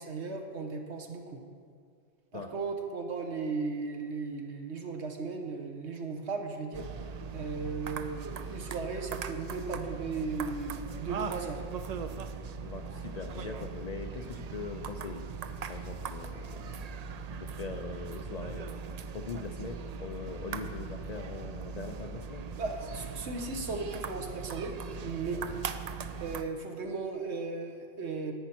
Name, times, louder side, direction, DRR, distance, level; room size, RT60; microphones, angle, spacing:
voice 1, 0.0-1.4 2.3-7.1 7.3-11.6 13.5-13.6 22.5-24.7 25.0-25.4 26.2-28.3, right 4 dB, 80° right, 3 dB, 1.3 m, -36 dB
sound 1, 6.7-26.4, right 5 dB, 55° right, 0.4 m, -40 dB
voice 2, 12.5-15.3 15.7-18.7 19.1-22.5 25.3-25.4, left 4 dB, 50° left, 5 dB, 0.5 m, -42 dB
10.5 x 9.1 x 4.4 m, 2.2 s
omnidirectional pair, 1.1 m